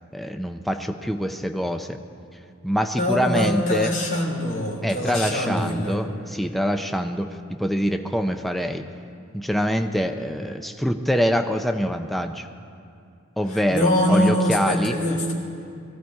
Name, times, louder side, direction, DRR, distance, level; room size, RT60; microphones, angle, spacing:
voice 1, 0.1-2.0 2.6-3.9 4.8-8.9 9.3-12.5 13.4-15.0, equal, ahead, 6 dB, 0.5 m, -25 dB
voice 2, 3.0-6.0 13.7-15.3, left 1 dB, 35° left, -2 dB, 3.3 m, -23 dB
20.5 x 14.5 x 4.7 m, 2.4 s
head